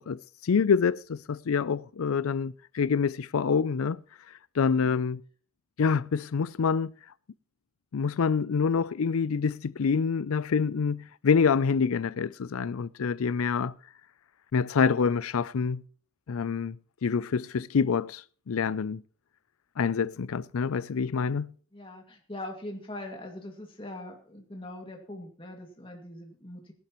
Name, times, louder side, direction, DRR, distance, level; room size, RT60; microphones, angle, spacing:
voice 1, 0.0-4.0 4.6-5.2 5.8-6.9 7.9-13.7 14.5-15.8 16.3-16.8 17.0-18.2 18.5-19.0 19.8-21.5, left 5 dB, 85° left, 0.5 m, -26 dB
voice 2, 21.7-26.7, left 1 dB, 25° left, 2.3 m, -42 dB
18.5 x 11.5 x 3.0 m
head